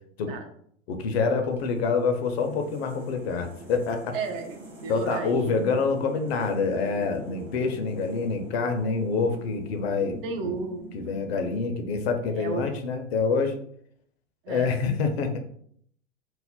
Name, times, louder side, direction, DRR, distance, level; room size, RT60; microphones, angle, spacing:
voice 1, 0.9-4.1 4.9-10.2 10.4-10.5 10.9-13.5 14.5-15.3, left 4 dB, 55° left, 6 dB, 0.6 m, -26 dB
sound 1, 1.4-12.5, right 1 dB, 5° right, 0.3 m, -45 dB
voice 2, 4.1-5.7 10.2-11.7 12.3-12.7 14.4-14.7, right 4 dB, 50° right, 5 dB, 0.6 m, -34 dB
2.5 x 2.0 x 3.6 m, 0.64 s
figure-of-eight pair, 95°, 36 cm